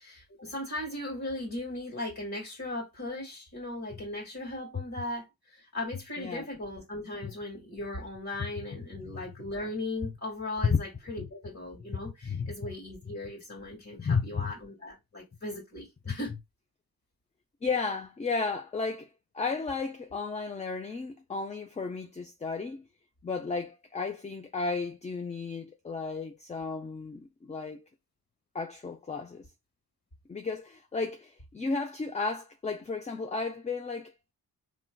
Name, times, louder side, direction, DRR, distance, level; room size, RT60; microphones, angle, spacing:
voice 1, 0.0-16.3, left 1 dB, 45° left, 2.0 m, -38 dB
voice 2, 12.2-12.6 14.0-14.5 16.1-16.2 17.6-22.8 23.2-27.8 28.5-29.5 30.3-34.3, left 4 dB, 20° left, 0.4 m, -33 dB
4.4 x 3.2 x 2.2 m
wide cardioid pair, 105°, 39 cm